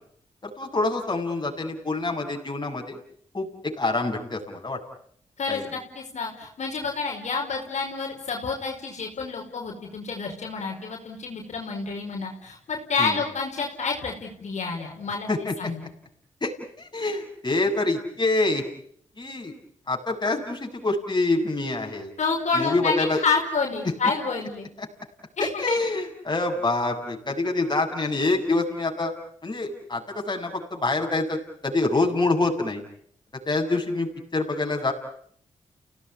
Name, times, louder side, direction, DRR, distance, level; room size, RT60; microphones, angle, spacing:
voice 1, 0.4-3.0 3.3-3.5 3.8-4.8 5.5-5.7 13.0-13.2 15.3-15.5 16.4-16.5 16.8-18.6 19.2-19.5 19.9-22.1 22.5-23.2 24.8-24.9 25.4-29.1 29.4-32.8 33.5-34.9, left 2 dB, 35° left, 2 dB, 8.0 m, -26 dB
voice 2, 5.4-15.9 22.2-24.7 25.4-25.8, left 4 dB, 70° left, 0 dB, 5.2 m, -29 dB
30.0 x 18.0 x 9.9 m, 0.65 s
supercardioid pair, 45°, 12 cm